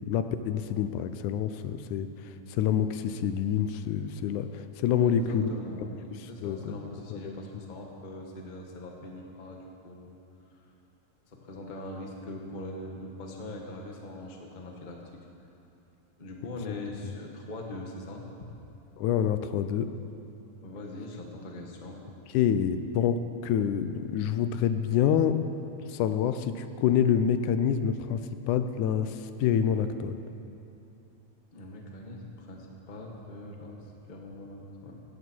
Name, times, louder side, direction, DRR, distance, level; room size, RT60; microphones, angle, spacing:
voice 1, 0.1-2.1 2.5-5.5 6.4-6.8 7.1-7.3 19.0-19.9 22.3-25.4 25.9-30.2, left 8 dB, 90° left, 10 dB, 2.2 m, -27 dB
voice 2, 5.0-10.2 10.5-10.7 11.3-15.0 16.2-18.2 20.6-22.0 31.5-35.0, left 1 dB, 25° left, 0 dB, 1.0 m, -42 dB
16.5 x 14.5 x 4.6 m, 2.9 s
omnidirectional pair, 3.4 m